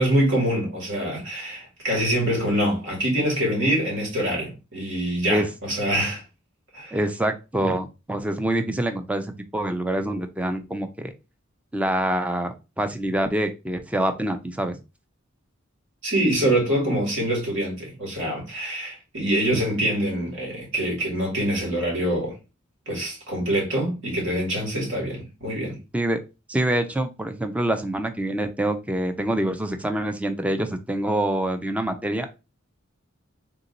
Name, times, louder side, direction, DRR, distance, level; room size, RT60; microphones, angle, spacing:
voice 1, 0.0-6.2 6.7-7.0 16.0-22.3 22.9-25.8, right 1 dB, 65° right, 1.9 m, -25 dB
voice 2, 6.9-11.1 11.7-14.8 25.9-26.2 26.5-32.3, right 1 dB, 5° right, 0.4 m, -26 dB
3.5 x 2.8 x 3.9 m
head